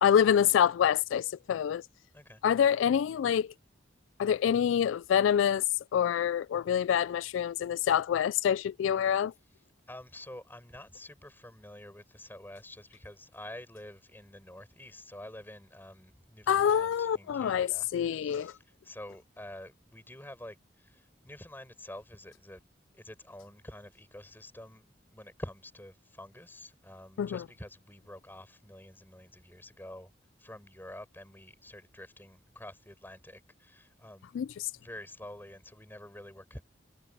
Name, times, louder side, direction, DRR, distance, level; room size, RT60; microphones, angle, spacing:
voice 1, 0.0-1.8 2.4-3.5 4.2-5.6 5.9-9.3 16.5-18.5 27.2-27.4 34.3-34.7, left 8 dB, 85° left, 0.3 m, -26 dB
voice 2, 9.9-22.6 22.9-30.1 30.4-34.3 34.8-36.6, left 1 dB, 10° left, 6.7 m, -48 dB
head